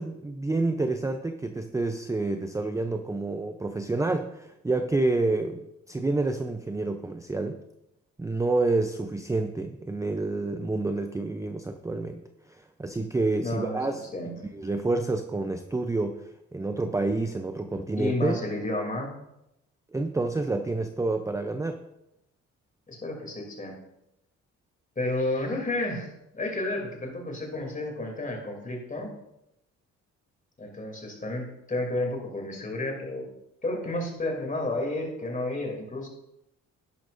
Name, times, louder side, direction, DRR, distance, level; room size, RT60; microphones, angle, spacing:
voice 1, 0.0-7.6 8.2-12.2 12.6-14.1 14.5-18.4 19.9-21.8, right 2 dB, 10° right, 7 dB, 0.5 m, -28 dB
voice 2, 13.4-14.3 18.0-19.1 22.9-23.8 25.0-29.1 30.6-33.2 33.6-36.1, left 2 dB, 25° left, 2 dB, 2.9 m, -31 dB
11.0 x 10.5 x 2.6 m, 0.86 s
cardioid pair, 90°, 30 cm